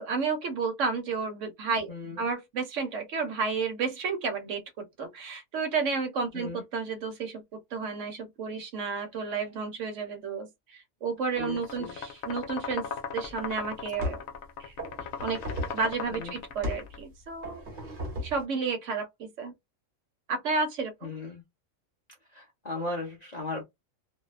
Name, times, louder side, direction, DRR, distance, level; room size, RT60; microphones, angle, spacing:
voice 1, 0.0-14.2 14.6-14.7 15.2-15.4 15.7-17.6 18.2-19.5 20.3-21.1, right 4 dB, 65° right, 1.1 m, -32 dB
voice 2, 1.9-2.2 6.3-6.6 11.4-11.9 16.1-16.4 21.0-21.4 22.3-23.6, left 2 dB, 45° left, 0.5 m, -37 dB
sound 1, 11.2-17.0, left 6 dB, 75° left, 1.0 m, -38 dB
sound 2, 13.3-13.4 14.0-14.4 14.8-15.9 16.6-16.9 17.4-18.4, left 1 dB, 40° right, 1.1 m, -35 dB
2.6 x 2.1 x 2.3 m
omnidirectional pair, 1.4 m